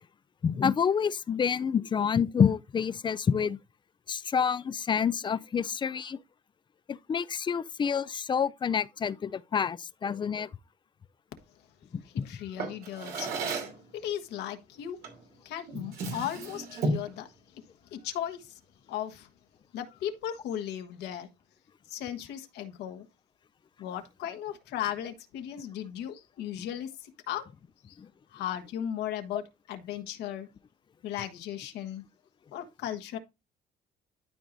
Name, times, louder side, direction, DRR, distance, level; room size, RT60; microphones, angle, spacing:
voice 1, 0.4-3.6 4.1-6.2 6.9-10.5 11.9-12.3 28.0-28.1, left 7 dB, 30° left, 0.4 m, -28 dB
voice 2, 12.1-13.3 13.9-15.0 15.4-17.3 17.9-18.5 18.9-19.3 19.7-21.3 21.9-23.1 23.8-27.4 27.9-28.0 28.3-30.5 31.0-32.0 32.5-33.2, left 10 dB, 80° left, 1.3 m, -36 dB
Drawer open or close, 12.6-13.8 15.0-15.3 15.7-17.2, right 2 dB, 75° right, 2.7 m, -33 dB
12.5 x 4.7 x 2.6 m
cardioid pair, 110°, 17 cm